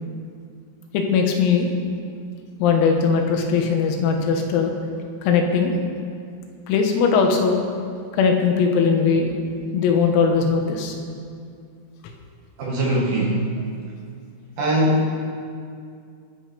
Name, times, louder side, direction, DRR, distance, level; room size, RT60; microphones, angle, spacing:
voice 1, 0.9-1.7 2.6-4.7 5.2-5.7 6.7-7.6 8.2-9.3 9.7-11.0, left 5 dB, 85° left, 3 dB, 4.2 m, -19 dB
voice 2, 12.6-13.5 14.6-15.1, equal, 60° right, -3 dB, 2.6 m, -21 dB
22.5 x 8.8 x 5.2 m, 2.3 s
omnidirectional pair, 5.9 m